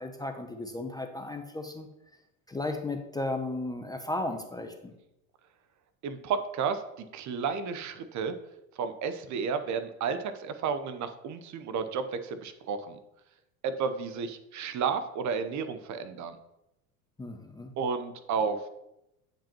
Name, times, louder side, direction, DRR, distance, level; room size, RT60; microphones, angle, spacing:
voice 1, 0.0-1.9 2.5-4.9 17.2-17.7, left 2 dB, 10° left, 5 dB, 0.6 m, -35 dB
voice 2, 6.0-8.3 8.8-13.0 13.6-16.4 17.8-18.6, right 6 dB, 40° right, 10 dB, 0.8 m, -32 dB
8.8 x 5.3 x 2.9 m, 0.88 s
hypercardioid pair, 80°, 44 cm